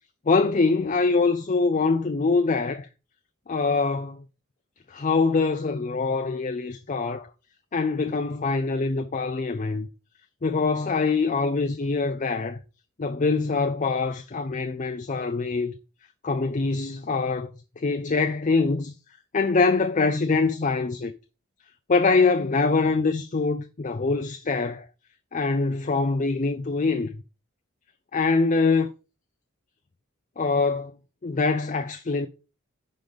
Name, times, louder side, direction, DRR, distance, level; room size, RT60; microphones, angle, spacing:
voice 1, 0.3-2.9 3.5-4.2 4.9-7.3 7.7-9.9 10.4-12.6 13.0-15.7 16.2-17.5 17.8-18.9 19.3-21.1 21.9-24.9 25.3-27.1 28.1-28.9 30.4-30.9 31.2-32.3, left 4 dB, 35° left, 0.5 m, -24 dB
10.0 x 3.9 x 5.1 m
head